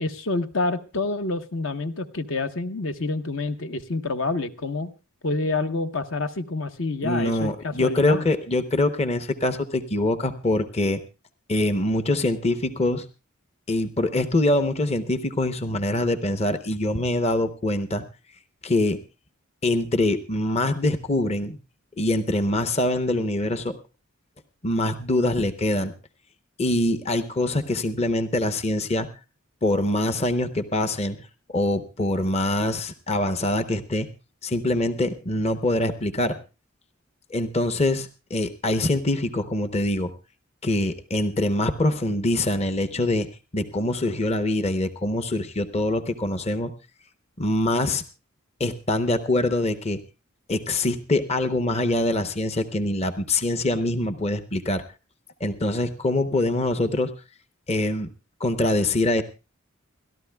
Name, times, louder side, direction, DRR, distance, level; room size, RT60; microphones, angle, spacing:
voice 1, 0.0-4.9 5.2-8.3, left 3 dB, 65° left, 8 dB, 1.0 m, -28 dB
voice 2, 7.0-11.0 11.5-13.1 13.7-18.0 18.6-19.0 19.6-21.6 22.0-23.8 24.6-25.9 26.6-29.1 29.6-31.2 31.5-34.1 34.4-36.4 37.3-40.1 40.6-43.3 43.5-46.7 47.4-48.0 48.6-50.0 50.5-54.8 55.4-57.1 57.7-58.1 58.4-59.2, left 1 dB, 30° left, 10 dB, 0.8 m, -24 dB
29.0 x 13.0 x 2.3 m, 0.31 s
head